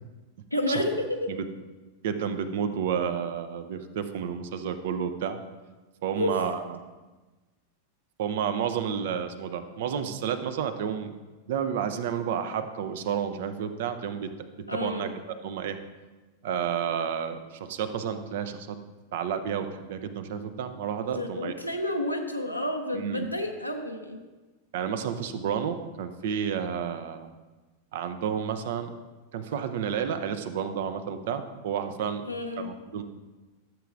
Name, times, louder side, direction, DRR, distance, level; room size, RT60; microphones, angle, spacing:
voice 1, 0.5-1.2 6.1-6.3 14.7-15.1 21.0-24.2 32.2-32.7, left 1 dB, 90° left, 2 dB, 0.6 m, -30 dB
voice 2, 2.0-5.4 6.0-6.8 8.2-11.1 11.5-14.3 14.7-15.8 16.4-18.8 19.1-21.5 22.9-23.3 24.7-27.3 27.9-28.9 29.3-32.2 32.6-33.0, right 7 dB, 55° right, 9 dB, 0.6 m, -31 dB
13.0 x 7.5 x 2.5 m, 1.2 s
figure-of-eight pair, 90°, 0 cm